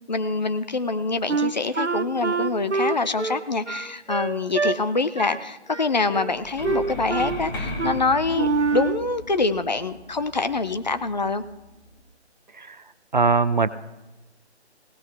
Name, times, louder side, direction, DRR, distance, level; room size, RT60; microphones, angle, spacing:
voice 1, 0.1-11.4, left 3 dB, 40° left, 11 dB, 0.7 m, -25 dB
Wind instrument woodwind instrument, 1.3-4.8 5.2-5.4 5.7-6.4 6.6-7.4 7.8-8.0 8.3-9.1, right 4 dB, 85° right, 0.9 m, -26 dB
sound 1, 6.3-12.0, left 1 dB, 20° left, 1.6 m, -37 dB
voice 2, 13.1-13.7, right 4 dB, 45° right, 14 dB, 0.7 m, -20 dB
20.0 x 17.5 x 3.4 m, 1.0 s
figure-of-eight pair, 150°, 34 cm